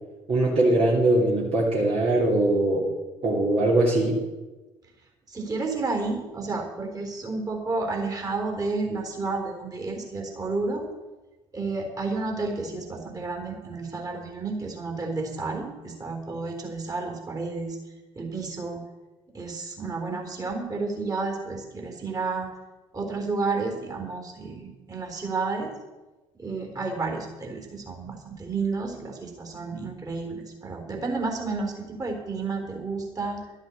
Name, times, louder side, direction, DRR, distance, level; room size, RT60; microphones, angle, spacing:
voice 1, 0.3-2.8 3.2-4.2, right 2 dB, 40° right, -4 dB, 2.9 m, -21 dB
voice 2, 5.3-10.9 11.5-17.8 18.2-18.8 19.3-22.5 22.9-25.7 26.4-33.4, right 3 dB, 25° right, 2 dB, 3.8 m, -31 dB
12.5 x 8.2 x 8.4 m, 1.1 s
figure-of-eight pair, 50°, 15 cm